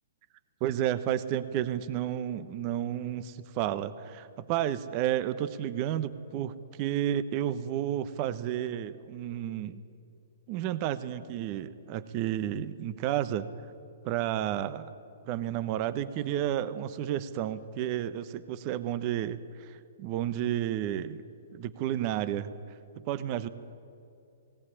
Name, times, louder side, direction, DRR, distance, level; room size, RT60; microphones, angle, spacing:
voice 1, 0.6-9.8 10.5-13.5 14.0-14.9 15.2-21.2 21.5-22.5 23.0-23.5, right 11 dB, 40° right, 13 dB, 1.0 m, -31 dB
18.0 x 18.0 x 9.9 m, 2.5 s
hypercardioid pair, 130°, 0 cm